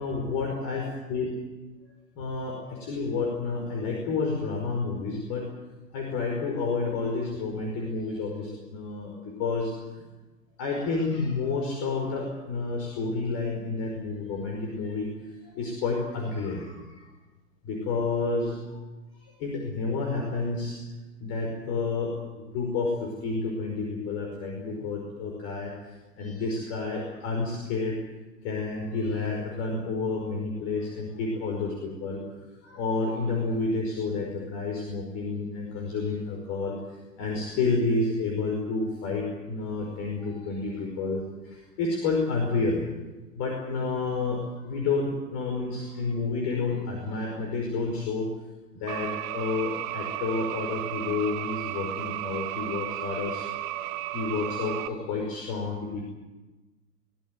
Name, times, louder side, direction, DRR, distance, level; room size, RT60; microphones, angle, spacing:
voice 1, 0.0-1.3 2.2-5.5 5.9-9.1 9.4-9.7 10.6-15.1 15.6-16.7 17.7-18.6 19.4-20.8 21.2-22.1 22.5-25.7 26.2-28.0 28.4-32.2 32.6-36.7 37.2-41.2 41.8-42.8 43.4-48.3 48.8-53.4 54.1-56.0, left 3 dB, 30° left, 1 dB, 5.2 m, -30 dB
sound 1, 48.9-54.9, right 14 dB, 30° right, 1.2 m, -34 dB
23.5 x 18.5 x 9.3 m, 1.1 s
figure-of-eight pair, 110°, 48 cm